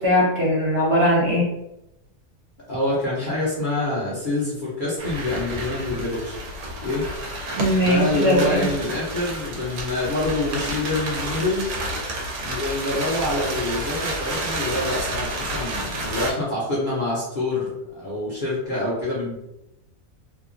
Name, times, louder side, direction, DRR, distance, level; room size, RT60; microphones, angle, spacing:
voice 1, 0.0-1.4 7.5-8.6, equal, 55° right, -5 dB, 1.2 m, -20 dB
voice 2, 2.7-6.4 6.8-7.1 7.8-11.7 12.4-19.3, left 2 dB, 40° left, -8 dB, 0.8 m, -26 dB
sound 1, 5.0-16.3, right 1 dB, 85° right, 1.1 m, -30 dB
2.9 x 2.2 x 2.5 m, 0.87 s
omnidirectional pair, 1.5 m